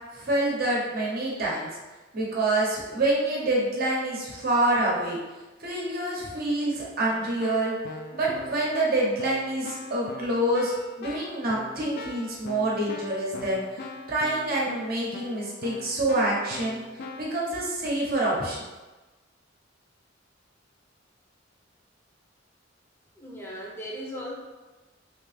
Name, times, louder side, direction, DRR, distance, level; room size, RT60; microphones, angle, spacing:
voice 1, 0.1-1.7 2.1-5.2 5.6-7.7 8.1-16.8 17.2-18.6, right 1 dB, 50° right, -4 dB, 0.9 m, -27 dB
Keyboard (musical), 7.1-17.4, left 3 dB, 50° left, 0.3 m, -42 dB
voice 2, 23.2-24.3, equal, 15° left, -3 dB, 0.7 m, -37 dB
3.2 x 2.9 x 3.3 m, 1.2 s
head